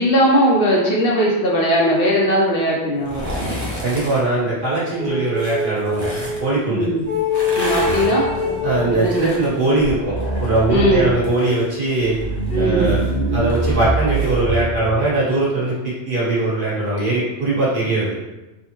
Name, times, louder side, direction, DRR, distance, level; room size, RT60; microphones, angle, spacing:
voice 1, 0.0-3.5 6.7-7.1 7.5-8.2 8.9-9.4 10.7-11.1 12.5-12.9, equal, 60° left, -3 dB, 0.8 m, -18 dB
sound 1, 3.0-4.2 5.3-6.4 7.2-10.6 10.9-14.3 14.7-14.8, equal, 20° left, 0.5 m, -32 dB
voice 2, 3.8-6.1 6.4-6.9 8.6-10.1 10.4-12.2 12.5-13.0 13.3-18.1, right 2 dB, 50° right, -8 dB, 1.3 m, -20 dB
sound 2, 5.0-6.5 7.0-9.8, left 3 dB, 75° right, 1.2 m, -24 dB
sound 3, 7.6-9.1 9.5-9.6 9.8-11.4 12.0-15.1, right 3 dB, 80° left, 1.3 m, -25 dB
3.5 x 2.1 x 2.9 m, 1.1 s
omnidirectional pair, 1.2 m